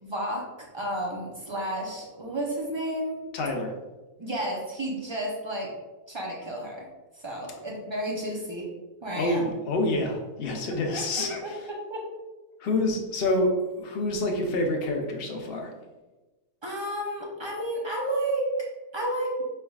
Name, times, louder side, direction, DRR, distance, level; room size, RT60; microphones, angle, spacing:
voice 1, 0.0-3.2 4.2-5.7 6.1-6.9 7.2-8.7 9.0-9.5 10.9-11.5 11.9-12.0 16.6-18.5 18.9-19.4, right 1 dB, 40° right, -2 dB, 0.4 m, -32 dB
voice 2, 3.3-3.7 9.1-11.5 12.6-15.7, left 1 dB, 50° left, 1 dB, 0.7 m, -27 dB
5.4 x 3.5 x 2.3 m, 1.2 s
omnidirectional pair, 1.6 m